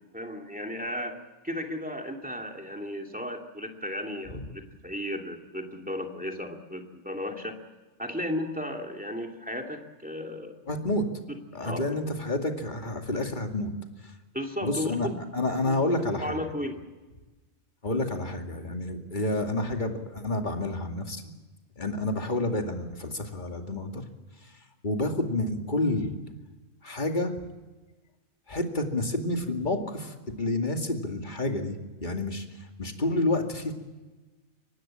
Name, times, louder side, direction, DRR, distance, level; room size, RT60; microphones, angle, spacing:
voice 1, 0.1-7.6 8.0-10.6 11.3-11.8 14.3-15.2 15.6-15.8 16.2-16.8, left 1 dB, 5° right, 2 dB, 2.5 m, -35 dB
voice 2, 10.7-11.0 11.5-13.7 14.0-14.1 14.6-15.1 15.3-16.4 17.8-21.3 21.8-24.0 24.8-26.1 26.8-27.3 28.5-33.7, left 2 dB, 35° left, 4 dB, 2.5 m, -29 dB
24.5 x 19.0 x 8.8 m, 1.2 s
omnidirectional pair, 1.4 m